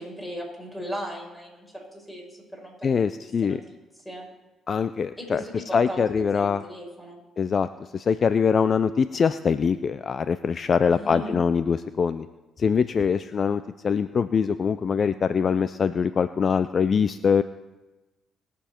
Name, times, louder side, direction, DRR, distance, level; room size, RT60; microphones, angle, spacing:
voice 1, 0.0-2.9 3.4-3.8 4.1-4.3 5.2-7.2 10.9-11.4, equal, 10° left, -1 dB, 5.3 m, -37 dB
voice 2, 2.8-3.6 4.7-6.6 7.4-12.3 12.6-17.4, left 6 dB, 50° left, 13 dB, 0.4 m, -23 dB
21.0 x 7.0 x 4.4 m, 1.1 s
supercardioid pair, 70°, 0 cm